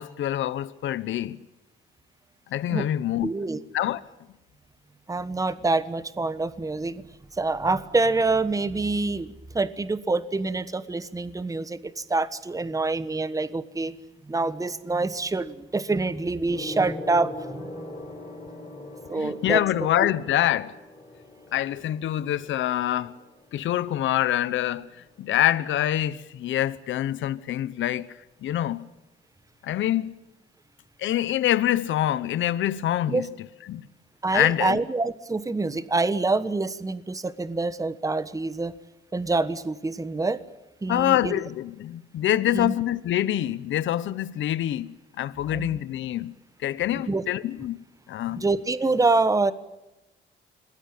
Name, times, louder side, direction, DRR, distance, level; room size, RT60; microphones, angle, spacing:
voice 1, 0.0-1.4 2.5-3.3 3.7-4.0 19.1-20.8 21.5-23.1 23.5-24.9 25.2-28.9 29.6-30.2 31.0-33.3 33.7-33.9 34.3-34.8 40.9-46.4 46.6-47.8 48.1-48.4, left 12 dB, 75° left, 1.0 m, -25 dB
voice 2, 3.2-3.6 5.1-7.0 7.4-13.9 14.3-17.9 19.1-19.6 33.1-33.3 34.2-38.7 39.1-40.4 40.8-41.4 42.5-42.7 45.5-45.8 47.1-47.2 48.4-49.5, right 3 dB, 15° right, 1.3 m, -26 dB
Gong, 16.5-26.2 27.2-27.4, left 2 dB, 25° left, 6.0 m, -43 dB
26.5 x 19.5 x 8.8 m
cardioid pair, 90°, 20 cm